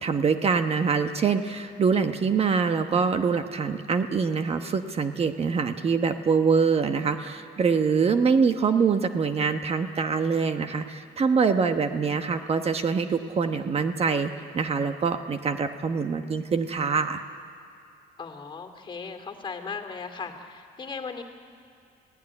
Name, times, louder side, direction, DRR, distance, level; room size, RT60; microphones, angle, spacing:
voice 1, 0.0-17.2, right 5 dB, 35° right, 8 dB, 1.1 m, -24 dB
voice 2, 7.8-8.2 18.2-21.2, left 5 dB, 30° left, 5 dB, 2.4 m, -38 dB
28.5 x 17.0 x 9.9 m, 2.4 s
cardioid pair, 110°, 17 cm